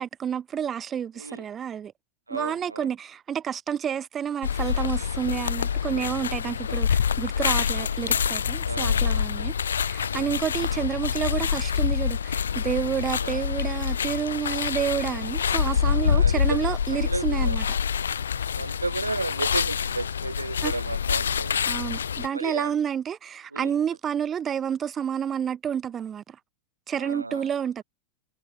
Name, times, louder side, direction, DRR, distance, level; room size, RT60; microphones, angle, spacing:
voice 1, 0.0-1.9 2.3-17.6 20.6-20.7 21.7-26.4 26.9-27.8, right 8 dB, 25° right, 2.6 m, -29 dB
voice 2, 2.3-2.9 7.7-7.9 8.6-9.2 13.2-13.4 15.8-17.6 18.5-21.6 22.3-22.8 23.5-23.8 27.0-27.5, right 3 dB, 80° right, 5.3 m, -33 dB
sound 1, 4.4-22.3, left 7 dB, 70° left, 2.8 m, -26 dB
figure-of-eight pair, 90°, 0 cm